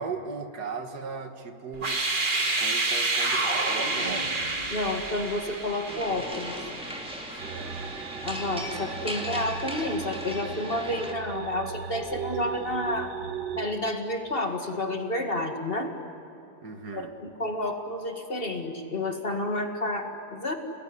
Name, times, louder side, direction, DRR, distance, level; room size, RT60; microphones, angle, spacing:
voice 1, 0.0-2.0 2.6-4.6 7.4-7.8 16.6-17.1, right 4 dB, 70° right, 6 dB, 2.2 m, -37 dB
sound 1, 1.7-8.6, right 2 dB, 30° right, 1.9 m, -29 dB
voice 2, 4.7-6.5 8.2-13.1 13.6-15.9 16.9-20.5, left 1 dB, 35° left, 5 dB, 2.0 m, -30 dB
sound 2, 5.9-11.1, equal, 5° right, 2.5 m, -38 dB
sound 3, 7.4-13.7, right 8 dB, 90° right, 1.5 m, -37 dB
30.0 x 20.0 x 9.7 m, 3.0 s
omnidirectional pair, 1.8 m